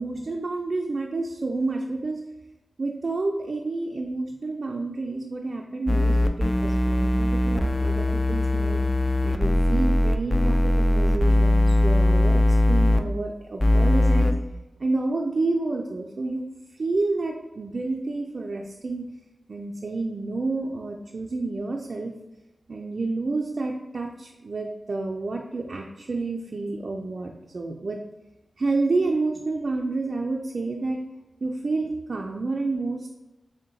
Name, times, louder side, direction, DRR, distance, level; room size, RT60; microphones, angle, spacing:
voice 1, 0.0-2.2 2.8-8.8 9.2-14.4 14.8-16.5 16.8-19.1 19.5-22.1 22.7-28.0 28.6-31.0 31.4-33.1, right 3 dB, 65° right, 1 dB, 0.3 m, -29 dB
sound 1, 5.9-13.0 13.6-14.3, left 1 dB, 30° left, 0.3 m, -20 dB
3.7 x 2.1 x 3.9 m, 1.0 s
cardioid pair, 40°, 0 cm